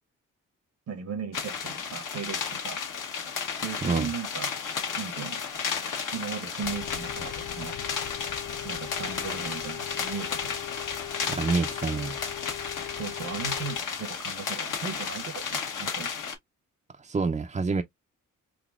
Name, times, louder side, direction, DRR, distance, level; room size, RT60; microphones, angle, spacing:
voice 1, 0.9-2.8 3.6-4.6 5.0-5.4 6.1-7.8 8.6-10.6 13.0-16.1, right 6 dB, 65° right, 0.9 m, -37 dB
sound 1, 1.3-16.4, left 6 dB, 70° left, 1.1 m, -33 dB
sound 2, 6.6-13.8, left 11 dB, 40° left, 0.4 m, -40 dB
voice 2, 11.3-12.2 17.0-17.8, right 4 dB, 20° right, 0.4 m, -27 dB
4.0 x 2.8 x 2.3 m
supercardioid pair, 55°, 33 cm